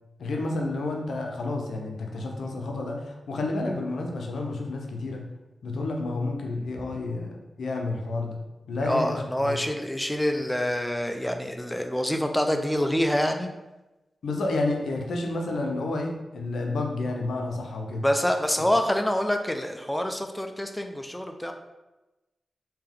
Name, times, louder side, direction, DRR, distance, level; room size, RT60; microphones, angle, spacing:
voice 1, 0.2-5.3 5.6-8.4 8.7-9.6 14.2-18.1, left 2 dB, 80° left, 2 dB, 0.6 m, -30 dB
voice 2, 8.8-13.5 18.0-21.5, equal, 10° left, 5 dB, 0.5 m, -26 dB
3.5 x 2.8 x 3.5 m, 1.0 s
cardioid pair, 40°, 0 cm